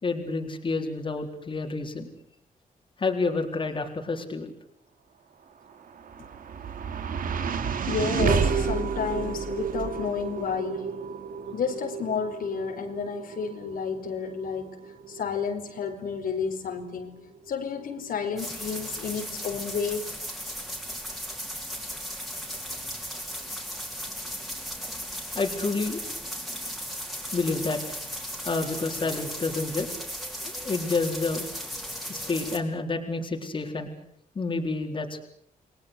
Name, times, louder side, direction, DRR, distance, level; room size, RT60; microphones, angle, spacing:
voice 1, 0.0-2.1 3.0-4.5 25.3-26.1 27.3-27.8 28.5-29.9 30.6-31.5 32.1-33.9 34.3-35.2, left 3 dB, 35° left, 2 dB, 4.2 m, -29 dB
sound 1, 5.7-18.0, right 6 dB, 70° right, 2.6 m, -32 dB
voice 2, 7.9-11.0 11.5-14.7 15.1-17.1 17.5-20.1, left 6 dB, 80° left, 3 dB, 4.7 m, -31 dB
sound 2, 18.4-32.6, equal, ahead, 5.0 m, -36 dB
29.5 x 22.0 x 8.3 m, 0.73 s
wide cardioid pair, 140°, 15 cm